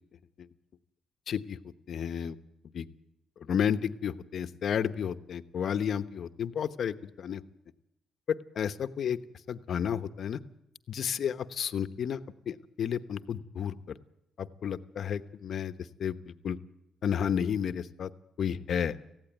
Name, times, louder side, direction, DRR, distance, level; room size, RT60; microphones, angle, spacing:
voice 1, 1.3-1.6 1.9-2.4 2.7-2.9 3.5-7.4 8.6-9.2 9.5-10.4 10.9-12.2 12.5-13.8 14.4-15.7 16.0-16.6 17.0-18.1 18.4-19.0, left 8 dB, 60° left, 11 dB, 1.0 m, -31 dB
18.5 x 15.5 x 9.3 m, 0.85 s
cardioid pair, 90°, 0 cm